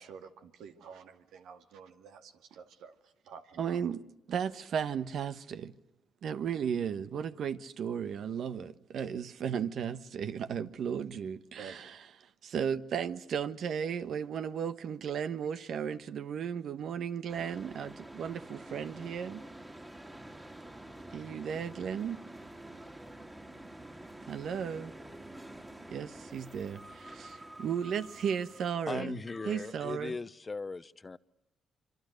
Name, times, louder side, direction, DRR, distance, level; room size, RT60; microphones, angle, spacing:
voice 1, 0.0-2.9 3.3-3.8 11.6-11.8, right 6 dB, 85° right, 2.2 m, -50 dB
voice 2, 3.6-4.0 4.3-5.7 6.2-19.4 21.1-22.2 24.3-24.9 25.9-29.2 29.4-30.1, right 7 dB, 65° right, 1.3 m, -35 dB
sound 1, 17.3-28.7, right 1 dB, 15° right, 2.5 m, -48 dB
voice 3, 28.9-31.2, left 4 dB, 25° left, 0.9 m, -38 dB
26.5 x 26.0 x 6.6 m
cardioid pair, 90°, 0 cm